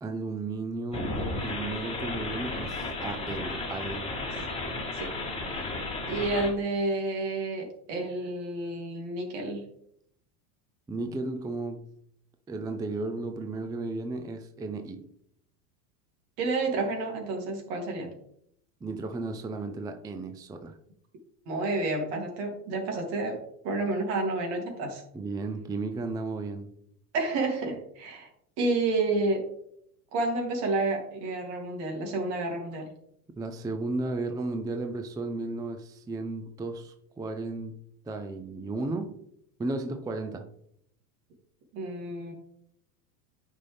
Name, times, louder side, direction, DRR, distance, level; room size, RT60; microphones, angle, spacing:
voice 1, 0.0-4.1 10.9-11.9 12.5-15.1 18.8-20.8 25.1-26.7 33.4-37.8 38.1-39.2 39.6-40.5, right 3 dB, 10° right, 7 dB, 0.4 m, -34 dB
sound 1, 0.9-6.5, left 2 dB, 10° left, 2.1 m, -34 dB
voice 2, 6.1-9.6 16.4-18.1 21.5-23.4 23.6-25.0 27.1-28.3 28.6-29.5 30.1-32.9 41.7-42.3, right 2 dB, 60° right, 2 dB, 2.9 m, -30 dB
9.6 x 5.5 x 3.4 m, 0.72 s
hypercardioid pair, 105°, 48 cm